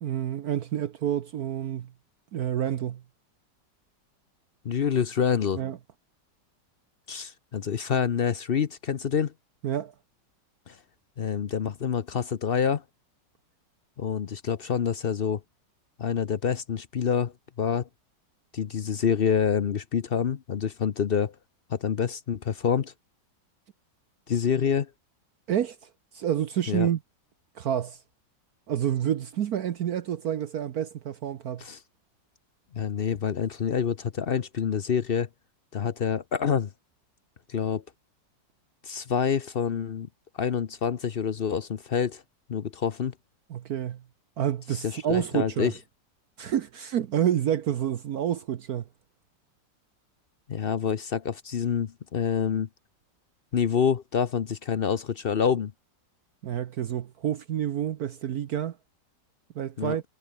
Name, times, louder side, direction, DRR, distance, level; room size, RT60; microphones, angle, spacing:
voice 1, 0.0-1.9 2.3-3.0 5.6-5.8 9.6-9.9 25.5-25.9 26.1-27.0 27.6-28.0 28.7-31.6 43.5-44.0 44.4-45.7 46.4-48.8 56.4-58.8 59.5-60.0, right 10 dB, 60° right, 1.3 m, -28 dB
voice 2, 4.6-5.6 7.1-9.3 10.7-10.8 11.2-12.8 14.0-15.4 16.0-17.3 17.6-17.9 18.5-21.3 21.7-22.9 24.3-24.9 26.7-26.9 31.6-31.8 32.7-35.3 35.7-36.7 37.5-37.8 38.8-40.1 40.4-42.2 42.5-43.1 44.8-45.7 50.5-52.7 53.5-55.7 59.8-60.0, left 7 dB, 55° left, 0.6 m, -27 dB
omnidirectional pair, 1.9 m